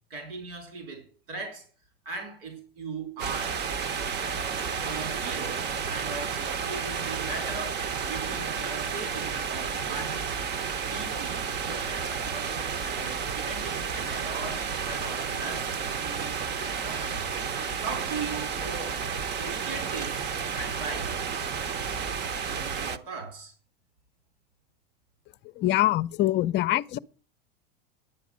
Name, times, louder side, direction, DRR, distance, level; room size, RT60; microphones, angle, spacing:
voice 1, 0.1-1.7 2.0-3.6 4.1-4.4 4.8-7.8 8.1-10.2 10.9-17.2 17.8-18.9 19.4-20.3 20.5-21.2 22.5-23.5, right 4 dB, 75° right, 4.5 m, -39 dB
sound 1, 3.2-23.0, right 6 dB, 35° right, 1.0 m, -31 dB
voice 2, 25.4-27.0, left 15 dB, 40° left, 0.6 m, -24 dB
11.0 x 8.3 x 6.3 m
supercardioid pair, 115°, 29 cm